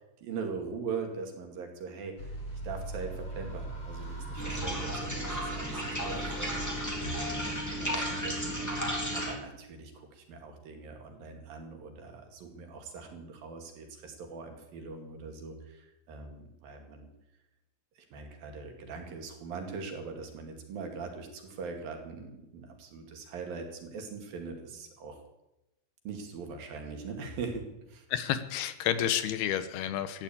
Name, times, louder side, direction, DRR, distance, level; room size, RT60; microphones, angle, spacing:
voice 1, 0.2-2.4 2.6-6.8 7.4-17.1 18.0-25.2 26.1-28.1, right 4 dB, 65° right, 4 dB, 4.0 m, -41 dB
sound 1, 2.2-9.1, right 1 dB, 45° left, 8.8 m, -40 dB
sound 2, 4.4-9.3, equal, 5° left, 2.7 m, -34 dB
voice 2, 28.1-30.2, left 10 dB, 80° left, 12 dB, 3.0 m, -30 dB
15.0 x 11.0 x 8.6 m, 0.91 s
omnidirectional pair, 4.5 m